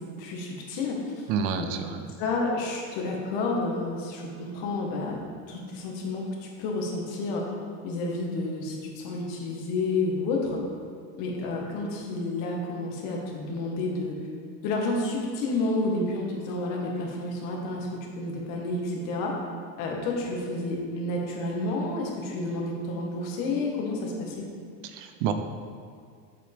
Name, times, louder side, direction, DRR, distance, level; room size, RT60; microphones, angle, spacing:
voice 1, 0.2-1.0 1.6-1.7 2.2-5.2 5.5-7.4 7.8-10.6 11.2-14.2 14.6-17.9 18.2-19.3 19.8-24.5, left 2 dB, 55° left, -1 dB, 1.8 m, -30 dB
voice 2, 1.3-2.0 24.9-25.3, right 7 dB, 65° right, 8 dB, 0.8 m, -28 dB
7.5 x 7.5 x 3.6 m, 2.2 s
supercardioid pair, 150°, 40 cm